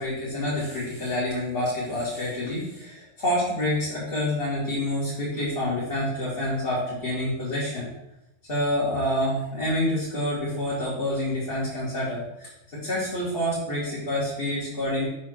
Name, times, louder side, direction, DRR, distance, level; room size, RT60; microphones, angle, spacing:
voice 1, 0.0-7.9 8.5-15.1, left 1 dB, 40° left, -8 dB, 2.3 m, -27 dB
7.1 x 5.9 x 4.6 m, 0.88 s
omnidirectional pair, 1.5 m